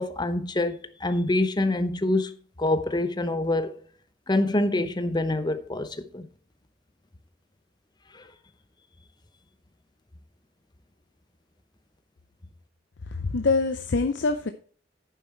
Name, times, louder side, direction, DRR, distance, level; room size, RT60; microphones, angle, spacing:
voice 1, 0.0-3.9 4.3-6.3 8.1-8.2, left 2 dB, 25° left, 0.8 m, -26 dB
voice 2, 13.1-14.5, left 3 dB, 70° left, 0.6 m, -25 dB
9.3 x 7.2 x 4.5 m
head